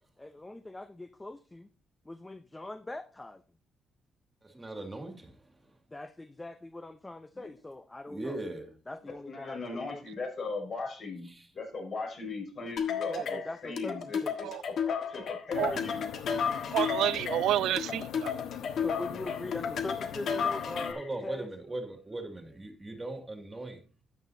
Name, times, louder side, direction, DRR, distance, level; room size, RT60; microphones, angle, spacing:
voice 1, 0.2-1.7 2.1-3.4 5.9-8.4 8.9-10.0 13.1-14.3 18.8-21.5, left 2 dB, 15° left, 0.7 m, -42 dB
voice 2, 4.4-5.8 8.1-8.8 11.2-11.5 20.9-23.8, right 2 dB, 20° right, 2.1 m, -39 dB
voice 3, 9.1-15.2 15.5-16.1, left 3 dB, 50° left, 6.0 m, -38 dB
sound 1, 12.8-21.1, left 7 dB, 65° left, 1.4 m, -33 dB
sound 2, 15.5-20.9, left 9 dB, 85° left, 1.0 m, -42 dB
voice 4, 16.7-18.3, right 13 dB, 85° right, 0.3 m, -29 dB
12.5 x 9.3 x 2.7 m
cardioid pair, 90°, 0 cm